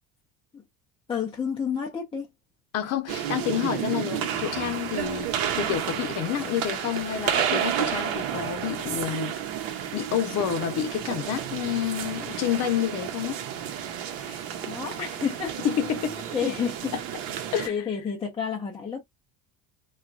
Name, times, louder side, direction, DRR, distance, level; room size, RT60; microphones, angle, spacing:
voice 1, 1.1-2.3 14.2-15.6 16.3-16.9 17.7-19.0, left 7 dB, 15° left, 0.5 m, -30 dB
voice 2, 2.7-9.3 9.9-13.4 15.6-16.5 17.5-17.8, left 10 dB, 45° left, 0.8 m, -29 dB
sound 1, 3.1-17.7, right 9 dB, 75° right, 0.8 m, -31 dB
2.9 x 2.3 x 2.5 m
cardioid pair, 130°, 35 cm